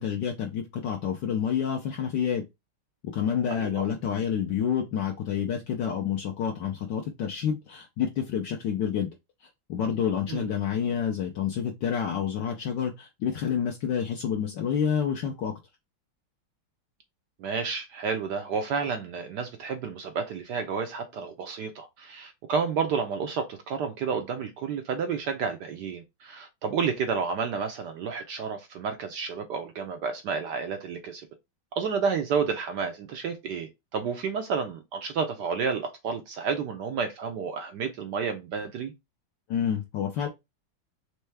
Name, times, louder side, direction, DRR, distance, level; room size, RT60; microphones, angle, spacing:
voice 1, 0.0-2.4 3.1-9.1 9.4-15.5 39.5-40.3, left 8 dB, 65° left, 1.3 m, -28 dB
voice 2, 3.5-3.9 10.3-10.5 17.4-31.3 31.7-38.9, right 6 dB, 70° right, 1.1 m, -30 dB
4.5 x 3.2 x 3.3 m
omnidirectional pair, 2.3 m